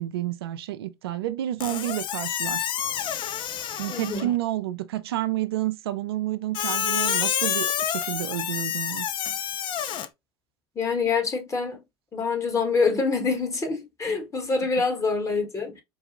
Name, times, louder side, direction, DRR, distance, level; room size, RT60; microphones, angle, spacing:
voice 1, 0.0-2.7 3.8-9.1, right 14 dB, 75° right, 0.5 m, -30 dB
Squeak, 1.6-4.4 6.5-10.1, left 9 dB, 40° left, 0.5 m, -28 dB
voice 2, 3.9-4.3 10.7-11.8 12.1-15.8, left 4 dB, 25° left, 1.5 m, -26 dB
4.5 x 2.3 x 2.9 m
hypercardioid pair, 80°, 13 cm